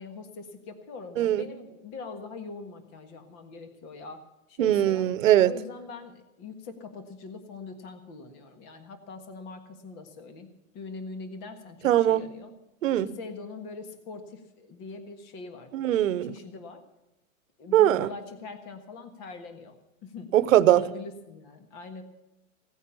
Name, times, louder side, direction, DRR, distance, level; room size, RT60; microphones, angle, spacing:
voice 1, 0.0-4.2 4.5-5.1 5.4-10.5 10.7-12.5 12.9-15.7 16.2-16.8 17.6-19.8 20.0-22.0, left 4 dB, 25° left, 1.5 m, -42 dB
voice 2, 4.6-5.5 11.8-12.3 12.8-13.1 15.7-16.4 17.7-18.1 20.3-20.8, right 12 dB, 70° right, 1.0 m, -21 dB
17.0 x 9.3 x 6.9 m
supercardioid pair, 175°, 41 cm